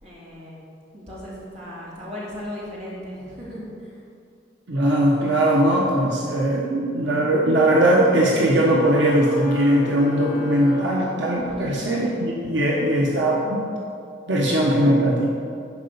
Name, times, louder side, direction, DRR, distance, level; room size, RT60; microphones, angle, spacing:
voice 1, 0.0-0.6 0.9-4.0 11.3-11.9, left 1 dB, 35° right, -7 dB, 2.7 m, -37 dB
voice 2, 4.7-13.7 14.3-15.3, right 1 dB, 75° right, -3 dB, 1.2 m, -20 dB
sound 1, 8.8-11.7, left 4 dB, 45° left, 2.6 m, -36 dB
11.0 x 4.8 x 6.9 m, 2.4 s
head